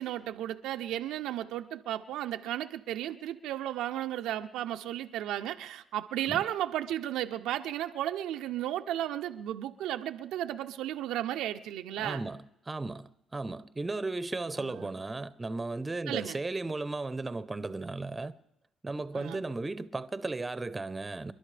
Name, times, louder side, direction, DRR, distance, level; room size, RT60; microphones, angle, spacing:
voice 1, 0.0-12.3 14.6-14.8 16.1-16.4 19.1-19.4, right 12 dB, 90° right, 0.6 m, -34 dB
voice 2, 12.0-18.4 18.8-21.3, right 3 dB, 20° right, 0.8 m, -35 dB
29.0 x 11.5 x 3.4 m
cardioid pair, 90°, 0 cm